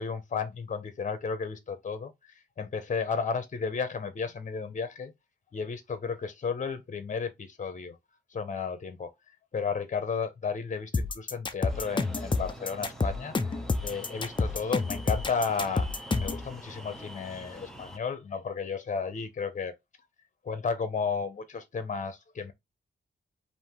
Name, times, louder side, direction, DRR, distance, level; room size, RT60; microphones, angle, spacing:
voice 1, 0.0-2.1 2.6-5.1 5.5-8.0 8.3-9.1 9.5-13.3 13.8-15.8 16.2-19.7 20.4-22.5, left 5 dB, 45° left, 1.1 m, -33 dB
sound 1, 10.9-16.4, left 3 dB, 25° left, 0.6 m, -29 dB
sound 2, 11.7-18.0, equal, ahead, 0.9 m, -45 dB
5.1 x 2.8 x 3.7 m
wide cardioid pair, 150°, 19 cm